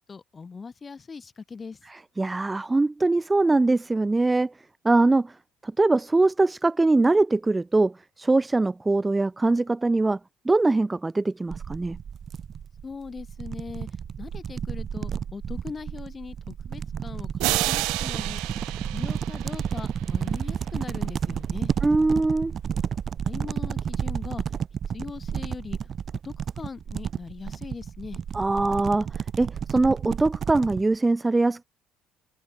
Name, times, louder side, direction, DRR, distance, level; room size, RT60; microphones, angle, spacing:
voice 1, 0.1-1.8 12.8-13.9 14.2-18.6 18.9-21.7 23.2-24.4 24.9-25.9 26.2-28.2, left 5 dB, 30° left, 1.5 m, -40 dB
voice 2, 2.2-4.5 4.8-5.3 5.6-10.2 10.4-12.0 21.8-22.5 28.3-31.6, right 2 dB, 15° right, 0.7 m, -22 dB
sound 1, 11.5-30.8, right 7 dB, 45° right, 1.4 m, -32 dB
sound 2, 17.4-20.1, right 24 dB, 80° right, 0.6 m, -30 dB
supercardioid pair, 80°, 0 cm